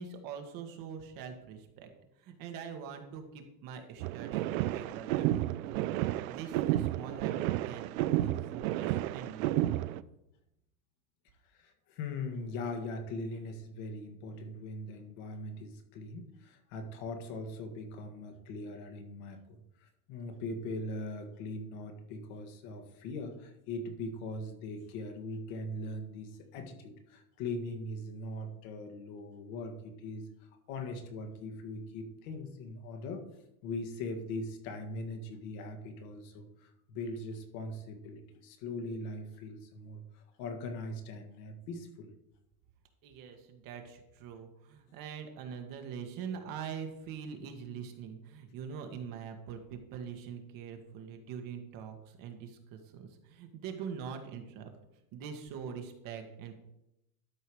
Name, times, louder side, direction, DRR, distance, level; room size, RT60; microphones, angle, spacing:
voice 1, 0.0-1.9 2.2-5.9 6.3-9.7 43.0-54.7 55.1-56.5, right 7 dB, 45° right, 5 dB, 1.6 m, -43 dB
sound 1, 4.0-10.0, right 15 dB, 65° right, 0.5 m, -31 dB
voice 2, 11.5-30.3 30.7-33.2 33.6-42.1, left 2 dB, 55° left, 5 dB, 1.8 m, -41 dB
12.0 x 4.7 x 4.8 m, 0.85 s
supercardioid pair, 125°, 46 cm